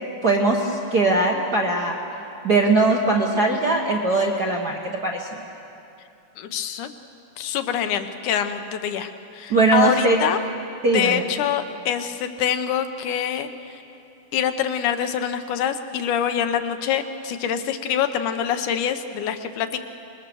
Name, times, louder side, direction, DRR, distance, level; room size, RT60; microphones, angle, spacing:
voice 1, 0.2-2.0 2.4-5.3 9.5-10.2 10.8-11.2, right 2 dB, 45° right, -1 dB, 1.3 m, -20 dB
voice 2, 6.4-6.9 7.4-10.4 10.9-13.8 14.3-19.8, left 9 dB, 80° left, 8 dB, 2.3 m, -25 dB
25.5 x 20.5 x 6.9 m, 2.6 s
omnidirectional pair, 3.6 m